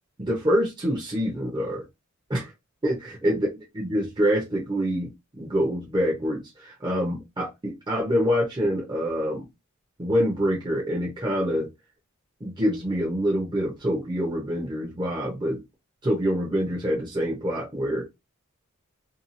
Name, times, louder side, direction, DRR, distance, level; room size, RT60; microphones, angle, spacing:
voice 1, 0.2-1.8 2.3-2.5 2.8-3.5 3.7-9.4 10.0-11.7 12.4-15.6 16.0-18.0, equal, 20° right, 0.7 m, -26 dB
2.7 x 2.3 x 2.6 m
head